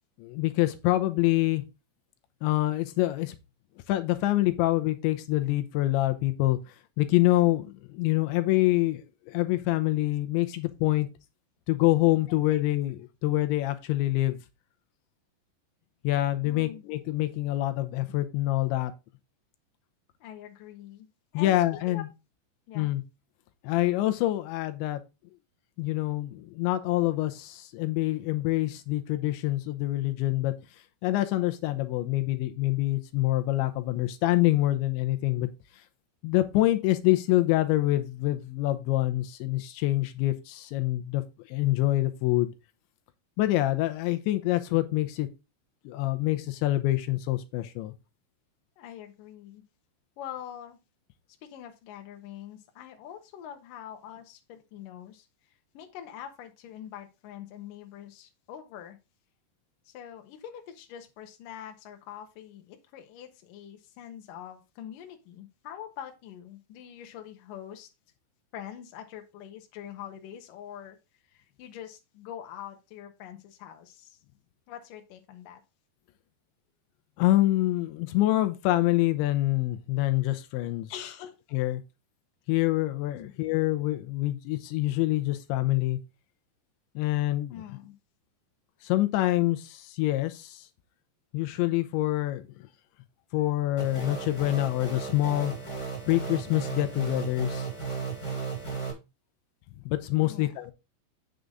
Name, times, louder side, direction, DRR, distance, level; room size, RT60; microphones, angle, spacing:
voice 1, 0.2-1.6 2.4-3.4 3.9-6.6 7.0-11.1 11.7-14.4 16.0-18.9 21.3-22.1 22.8-23.0 23.6-25.0 25.8-30.5 31.0-35.5 36.2-41.2 41.5-42.5 43.4-45.3 45.9-47.9 77.2-80.9 81.5-81.8 82.5-86.0 87.0-87.6 88.8-90.7 91.3-92.4 93.3-95.5 96.1-97.7 99.9-100.7, left 16 dB, 85° left, 3.0 m, -26 dB
voice 2, 12.1-12.6 16.4-16.8 20.2-21.1 21.3-22.0 22.7-22.9 48.8-49.6 50.2-50.8 51.4-59.0 59.9-67.9 68.5-71.0 71.3-74.2 74.7-75.6 80.9-81.4 83.1-83.3 87.5-88.0 100.2-100.6, left 10 dB, 65° left, 2.3 m, -44 dB
sound 1, 93.8-98.9, right 5 dB, 10° left, 2.1 m, -35 dB
8.2 x 6.6 x 3.7 m
omnidirectional pair, 5.2 m